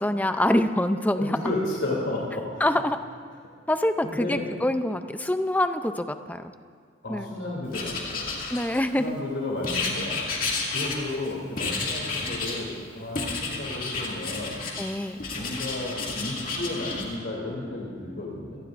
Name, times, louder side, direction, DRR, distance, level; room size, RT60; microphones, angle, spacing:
voice 1, 0.0-1.4 2.6-3.0 3.7-6.5 7.1-7.3 8.5-9.2 14.8-15.2, left 1 dB, 10° left, 9 dB, 0.5 m, -25 dB
voice 2, 1.2-2.6 4.0-4.4 7.0-8.4 8.9-10.2 10.7-14.6 14.9-18.6, left 2 dB, 70° left, -4 dB, 2.9 m, -33 dB
Writing, 7.7-9.0 9.6-11.3 11.6-12.6 13.2-14.9 15.2-17.1, left 3 dB, 45° left, 2.3 m, -31 dB
27.0 x 18.0 x 2.6 m, 2.1 s
head